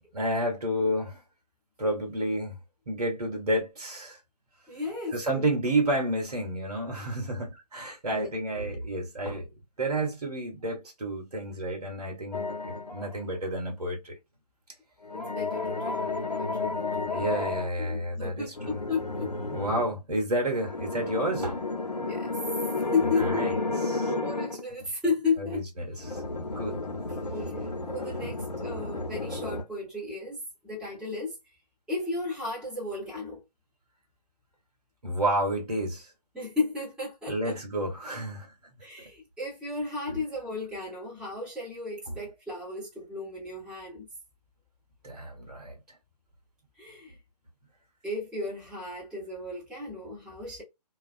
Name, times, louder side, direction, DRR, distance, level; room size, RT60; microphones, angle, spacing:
voice 1, 0.1-1.2 1.8-2.6 2.9-4.2 5.1-9.5 9.8-14.1 17.1-18.5 19.5-21.6 23.2-23.5 23.9-24.1 25.4-26.2 26.6-26.8 28.2-28.4 35.0-36.1 37.3-38.5 40.1-40.2 42.1-42.2 45.0-45.7, right 1 dB, 65° right, 1.1 m, -30 dB
voice 2, 4.7-5.5 8.1-8.3 15.1-17.4 17.8-19.3 22.0-22.4 22.9-23.4 24.0-25.6 27.3-27.6 27.9-30.4 30.6-31.4 31.9-33.4 36.3-37.5 38.8-44.1 46.8-47.1 48.0-50.6, left 3 dB, 5° right, 1.0 m, -34 dB
sound 1, 12.3-13.2 15.0-17.7 18.5-19.9 20.5-24.6 26.0-29.6, left 3 dB, 85° left, 0.6 m, -32 dB
2.3 x 2.3 x 2.4 m
figure-of-eight pair, 135°, 21 cm